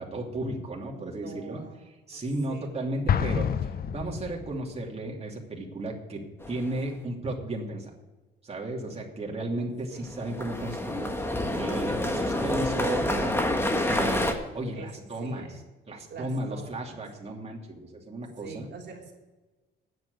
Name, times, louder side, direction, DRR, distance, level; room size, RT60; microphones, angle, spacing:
voice 1, 0.0-1.6 2.1-7.9 8.4-11.1 11.5-13.4 13.8-14.2 14.5-15.6 15.9-18.7, right 1 dB, 30° right, -1 dB, 2.8 m, -34 dB
voice 2, 0.9-1.8 2.1-2.2 2.5-2.7 9.9-10.0 14.2-14.4 14.7-15.6 16.1-17.0 18.4-19.1, right 5 dB, 60° right, 0 dB, 3.2 m, -44 dB
Explosion, 3.1-4.8, left 8 dB, 50° left, 0.7 m, -28 dB
sound 1, 6.4-6.9 10.1-14.3, left 1 dB, 10° left, 1.6 m, -28 dB
9.4 x 7.7 x 9.3 m, 1.2 s
cardioid pair, 90°, 20 cm